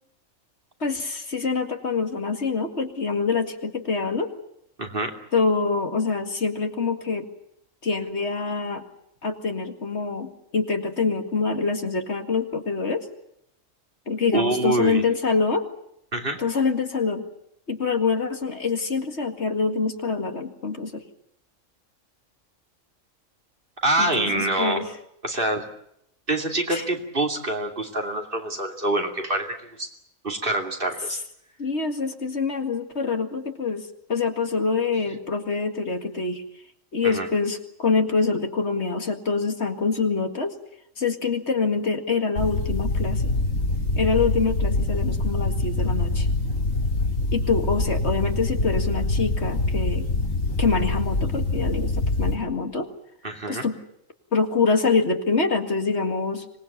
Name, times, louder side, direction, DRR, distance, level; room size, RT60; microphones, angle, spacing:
voice 1, 0.8-4.3 5.3-7.3 7.8-8.8 9.2-13.1 14.1-15.6 16.4-17.3 17.7-21.0 24.0-24.9 26.7-26.8 31.6-36.4 36.9-40.5 41.0-43.3 44.0-46.3 47.3-50.1 50.6-52.9 53.5-53.8 54.3-56.5, left 4 dB, 55° left, 5 dB, 2.3 m, -25 dB
voice 2, 4.8-5.1 14.3-15.1 16.1-16.4 23.8-24.9 25.2-25.7 26.3-29.9 30.2-31.2 37.0-37.3 53.2-53.6, right 2 dB, 40° right, 3 dB, 2.8 m, -26 dB
sound 1, 42.4-52.3, left 2 dB, 75° left, 3.4 m, -25 dB
25.5 x 19.5 x 8.6 m, 0.76 s
omnidirectional pair, 1.4 m